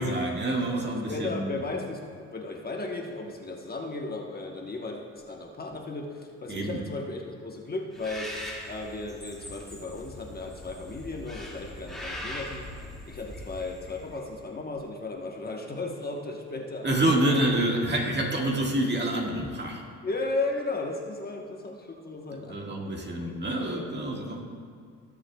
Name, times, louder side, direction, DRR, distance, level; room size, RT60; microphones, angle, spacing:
voice 1, 0.0-1.6 6.5-6.8 16.8-19.8 22.5-24.4, right 1 dB, 35° right, 0 dB, 1.7 m, -27 dB
voice 2, 0.9-8.3 8.7-12.7 13.0-17.4 20.0-23.3, left 3 dB, 30° left, 0 dB, 1.1 m, -35 dB
Bird, 7.9-14.3, equal, ahead, 2.1 m, -41 dB
19.5 x 7.5 x 2.3 m, 2.1 s
cardioid pair, 90°, 30 cm